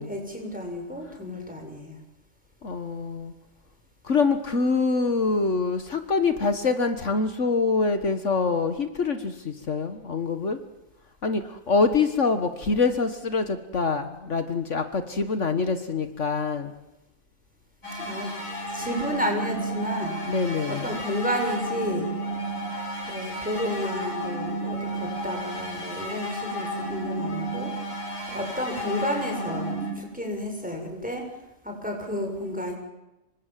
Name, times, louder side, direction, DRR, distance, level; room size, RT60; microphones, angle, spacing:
voice 1, 0.0-2.0 18.0-18.3 18.7-20.2 20.7-22.1 23.1-27.7 28.3-31.3 31.6-32.8, equal, 5° right, 2 dB, 7.1 m, -31 dB
voice 2, 2.6-3.3 4.0-10.6 11.2-16.7 20.3-20.9, left 4 dB, 65° left, 8 dB, 1.9 m, -25 dB
sound 1, 17.8-29.9, right 1 dB, 90° left, 6.8 m, -32 dB
27.5 x 24.0 x 7.6 m, 0.95 s
omnidirectional pair, 1.4 m